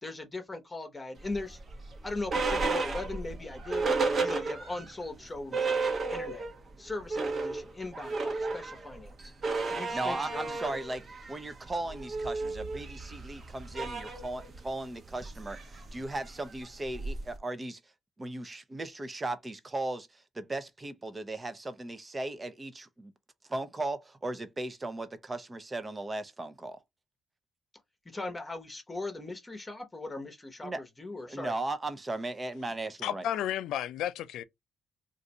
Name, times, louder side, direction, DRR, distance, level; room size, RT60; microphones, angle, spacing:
voice 1, 0.0-1.6 2.0-3.9 4.2-6.5 6.8-9.3 9.6-10.8 28.0-31.5, left 2 dB, 20° left, 1.0 m, -39 dB
sound 1, 1.3-4.9 5.2-5.3 5.5-6.6 6.9-17.4, right 3 dB, 45° right, 1.0 m, -33 dB
voice 2, 9.9-11.0 11.3-17.8 18.2-23.1 23.5-26.8 30.6-30.8 31.3-33.2, right 2 dB, 25° right, 0.7 m, -37 dB
voice 3, 33.0-34.4, left 11 dB, 85° left, 0.4 m, -32 dB
2.6 x 2.5 x 4.1 m
cardioid pair, 90°, 0 cm